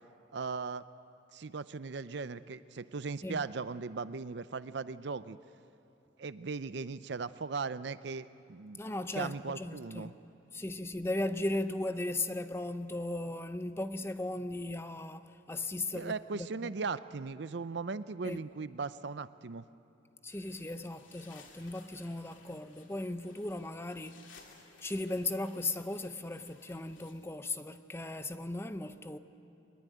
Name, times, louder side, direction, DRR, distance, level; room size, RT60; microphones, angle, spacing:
voice 1, 0.3-0.8 1.3-5.4 6.2-8.8 9.2-10.1 15.9-19.6, right 4 dB, 65° right, 0.5 m, -38 dB
voice 2, 8.8-10.1 10.5-16.7 18.2-18.4 20.2-24.2 24.8-29.2, left 2 dB, 15° left, 0.6 m, -37 dB
sound 1, 20.3-27.1, left 4 dB, 90° left, 2.7 m, -59 dB
23.0 x 21.0 x 9.2 m
head